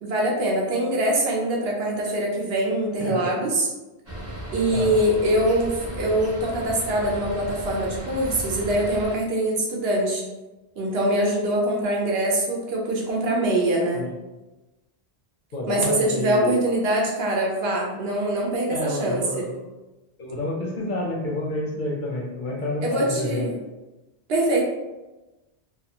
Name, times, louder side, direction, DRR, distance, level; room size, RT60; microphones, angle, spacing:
voice 1, 0.0-3.7 4.5-10.2 10.8-14.0 15.7-19.5 22.8-23.5 24.3-24.6, right 1 dB, 70° right, -2 dB, 0.9 m, -23 dB
voice 2, 3.0-3.3 4.7-5.0 13.9-14.1 15.5-16.6 18.7-19.6 20.2-23.5, left 1 dB, 60° left, -2 dB, 0.6 m, -29 dB
sound 1, 4.1-9.2, right 1 dB, 25° right, 0.3 m, -35 dB
2.7 x 2.0 x 2.8 m, 1.1 s
omnidirectional pair, 1.1 m